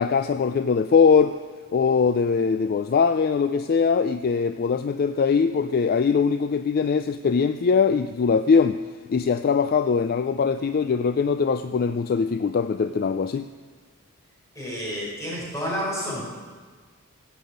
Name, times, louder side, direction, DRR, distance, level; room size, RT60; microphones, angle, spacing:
voice 1, 0.0-1.4 1.7-8.8 9.1-13.5, left 5 dB, 45° left, 10 dB, 0.3 m, -21 dB
voice 2, 14.5-16.4, equal, 15° left, -5 dB, 4.8 m, -30 dB
16.5 x 6.9 x 7.8 m, 1.5 s
head